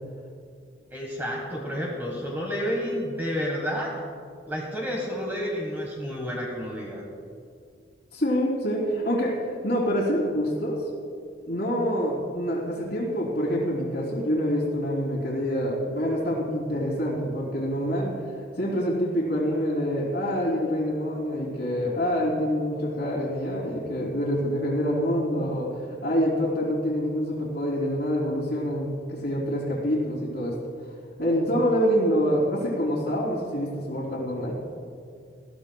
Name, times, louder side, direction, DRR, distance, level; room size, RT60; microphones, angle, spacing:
voice 1, 0.9-3.9 4.5-7.0, equal, 10° right, -3 dB, 1.4 m, -30 dB
voice 2, 8.1-9.4 9.6-10.8 11.5-18.1 18.6-25.7 26.0-30.6 31.2-34.5, equal, 65° left, -9 dB, 3.0 m, -26 dB
20.0 x 14.5 x 2.3 m, 2.3 s
head